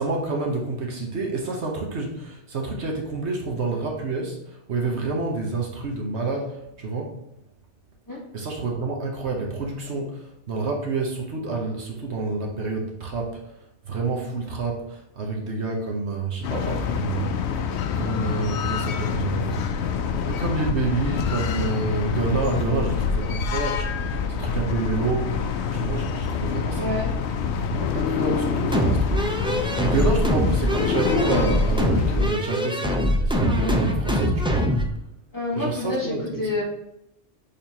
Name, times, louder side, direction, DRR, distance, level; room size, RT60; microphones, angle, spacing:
voice 1, 0.0-7.2 8.3-13.4 13.8-17.6 17.9-19.9 20.3-25.4 25.7-27.2 27.5-34.7 35.5-36.5, right 3 dB, 70° right, 1 dB, 1.3 m, -28 dB
sound 1, 16.4-32.3, left 6 dB, 70° left, 0.8 m, -26 dB
voice 2, 26.8-27.1 35.3-36.6, left 2 dB, 15° left, -6 dB, 2.3 m, -27 dB
sound 2, 28.7-34.9, equal, 5° right, 0.5 m, -23 dB
6.8 x 4.9 x 2.9 m, 0.82 s
omnidirectional pair, 1.2 m